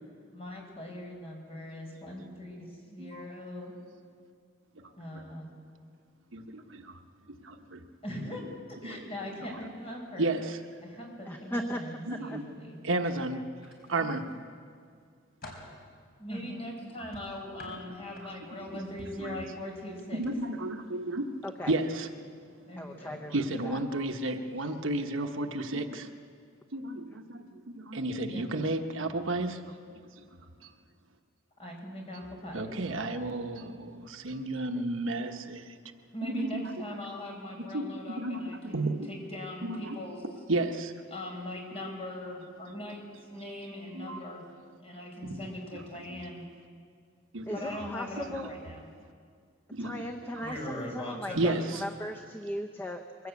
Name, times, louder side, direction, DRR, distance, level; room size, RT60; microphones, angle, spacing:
voice 1, 0.3-3.7 5.0-5.5 8.0-8.4 8.8-10.3 11.0-12.8 14.0-14.1 16.2-20.2 22.7-23.2 28.2-28.5 31.6-32.7 36.1-40.2 41.1-43.0 43.3-44.4 44.8-46.5 47.5-48.9 50.4-51.6, left 1 dB, 30° left, 0 dB, 4.8 m, -40 dB
voice 2, 6.3-7.0 7.4-7.8 8.8-9.1 10.2-10.6 12.1-12.4 12.8-14.2 17.6-17.7 18.6-18.8 19.2-19.4 20.1-21.3 21.7-22.1 23.3-26.1 26.7-30.3 30.6-30.7 32.5-35.8 36.2-37.0 37.6-39.1 39.6-40.0 40.5-40.9 43.9-44.2 45.2-45.4 45.7-45.8 46.1-46.2 47.3-47.9 48.3-48.5 49.7-50.6 51.4-51.8, right 2 dB, 70° right, 6 dB, 1.2 m, -33 dB
voice 3, 11.3-11.8 21.4-21.7 22.8-23.3 23.6-23.8 34.8-34.9 47.5-48.5 49.8-53.3, equal, 10° left, 4 dB, 0.7 m, -37 dB
sound 1, 13.6-14.4 14.9-15.8 17.1-18.6 19.0-19.3 20.1-20.3 20.7-20.9, left 2 dB, 45° left, 4.3 m, -49 dB
23.0 x 16.0 x 8.4 m, 2.1 s
head